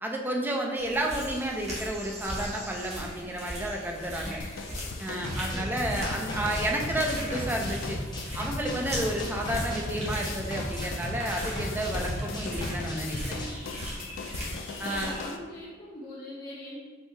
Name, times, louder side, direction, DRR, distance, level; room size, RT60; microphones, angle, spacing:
voice 1, 0.0-4.4 5.0-8.0 8.3-13.5 14.8-15.1, right 1 dB, 10° right, 0 dB, 0.4 m, -31 dB
sound 1, 0.8-15.3, equal, 35° right, 1.1 m, -39 dB
sound 2, 4.4-15.4, left 4 dB, 75° left, 0.3 m, -40 dB
sound 3, 5.2-13.5, left 1 dB, 20° left, 0.7 m, -36 dB
voice 2, 5.5-5.9 14.8-16.8, left 1 dB, 45° left, -10 dB, 1.1 m, -41 dB
4.5 x 2.7 x 3.3 m, 1.4 s
head